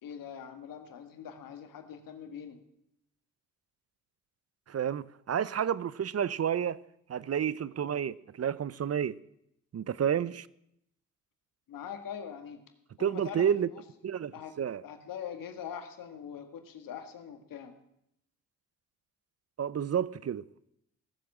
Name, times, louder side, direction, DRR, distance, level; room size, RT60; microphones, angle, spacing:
voice 1, 0.0-2.6 11.7-12.6 13.0-13.8 14.3-14.5 14.8-17.7, left 8 dB, 75° left, 1.9 m, -43 dB
voice 2, 4.7-6.8 7.1-9.2 9.7-10.5 13.0-13.7 14.0-14.8 19.6-20.4, right 8 dB, 45° right, 0.7 m, -30 dB
17.0 x 7.7 x 8.4 m
supercardioid pair, 50°, 33 cm